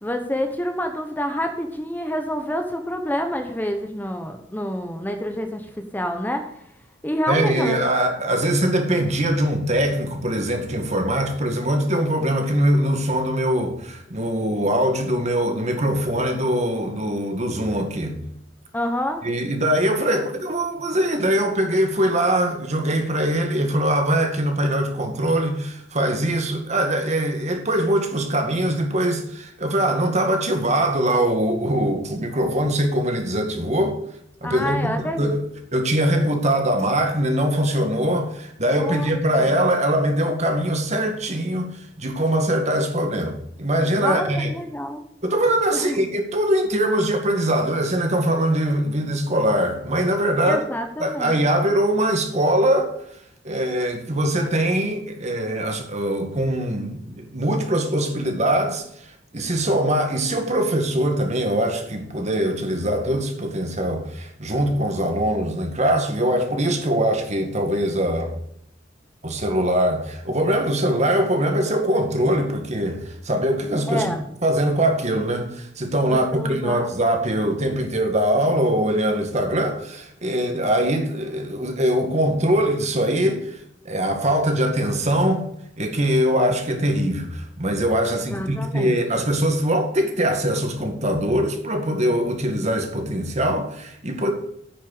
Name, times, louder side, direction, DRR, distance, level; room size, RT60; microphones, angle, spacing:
voice 1, 0.0-5.7 5.9-6.5 7.0-7.8 18.7-19.2 20.1-20.2 34.4-35.4 38.7-39.5 44.0-45.0 45.7-46.1 50.4-51.4 73.9-74.3 76.1-76.9 88.1-89.0, equal, 10° left, 1.0 m, -28 dB
voice 2, 7.3-18.2 19.2-34.0 34.4-44.5 45.2-50.6 51.0-52.9 53.4-59.1 59.3-68.3 69.2-74.1 74.4-85.5 85.8-94.3, right 1 dB, 40° right, 2.0 m, -22 dB
9.7 x 6.5 x 6.6 m
head